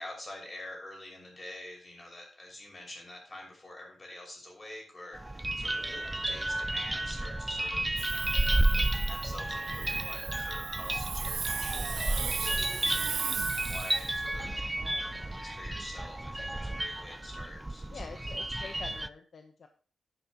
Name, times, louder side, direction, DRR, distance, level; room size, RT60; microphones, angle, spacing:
voice 1, 0.0-18.3 18.6-18.9, left 1 dB, 25° left, 0 dB, 5.5 m, -47 dB
sound 1, 5.1-19.1, right 1 dB, 10° right, 0.5 m, -32 dB
Hiss, 8.0-14.3, right 7 dB, 70° right, 0.6 m, -37 dB
sound 2, 9.7-15.4, right 3 dB, 85° right, 2.6 m, -48 dB
voice 2, 10.0-10.4 14.6-15.0 17.9-19.7, left 4 dB, 55° left, 6 dB, 0.9 m, -47 dB
11.0 x 11.0 x 3.0 m, 0.43 s
wide cardioid pair, 125°, 0 cm